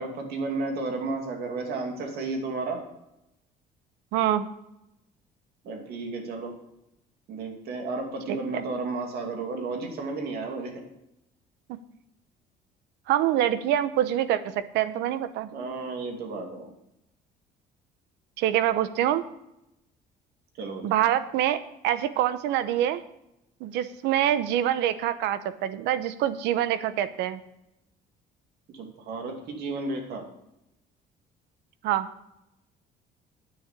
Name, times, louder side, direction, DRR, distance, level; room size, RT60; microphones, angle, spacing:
voice 1, 0.0-2.8 5.6-6.5 7.3-10.8 15.5-16.7 20.6-21.0 28.7-30.2, right 3 dB, 70° right, 3 dB, 2.6 m, -33 dB
voice 2, 4.1-4.5 11.7-11.8 13.1-15.5 18.4-19.2 20.8-23.0 23.6-27.4 31.8-32.1, right 11 dB, 90° right, 13 dB, 0.9 m, -25 dB
9.7 x 6.6 x 8.3 m, 0.84 s
cardioid pair, 110°, 17 cm